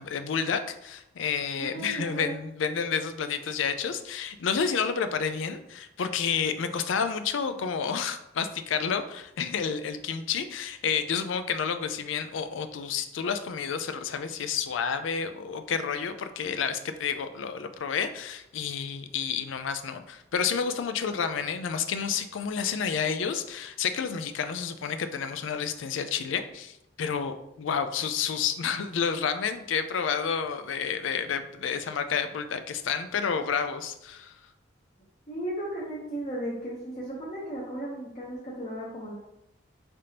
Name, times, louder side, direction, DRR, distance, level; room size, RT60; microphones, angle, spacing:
voice 1, 0.0-34.3, left 6 dB, 85° left, 10 dB, 0.4 m, -30 dB
voice 2, 1.6-2.3 35.3-39.1, right 1 dB, 35° left, -6 dB, 0.8 m, -35 dB
5.1 x 3.4 x 2.8 m, 0.82 s
head